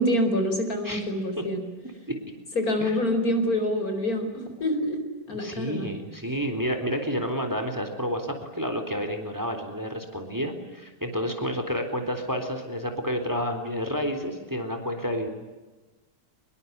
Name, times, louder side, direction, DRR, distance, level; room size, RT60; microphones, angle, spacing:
voice 1, 0.0-1.7 2.5-5.9, equal, 55° left, 7 dB, 5.1 m, -26 dB
voice 2, 5.4-15.3, equal, 10° right, 6 dB, 3.7 m, -30 dB
25.5 x 22.5 x 9.6 m, 1.2 s
omnidirectional pair, 1.9 m